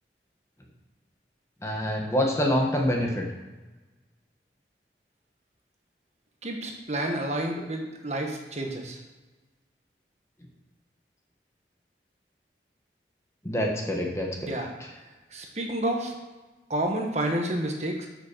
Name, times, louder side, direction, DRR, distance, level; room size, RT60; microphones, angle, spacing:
voice 1, 1.6-3.2 13.4-14.5, equal, 15° left, 1 dB, 1.3 m, -26 dB
voice 2, 6.4-9.0 14.5-14.7 15.3-16.1 16.7-18.1, right 1 dB, 40° right, 2 dB, 1.4 m, -29 dB
8.9 x 6.3 x 6.7 m, 1.2 s
head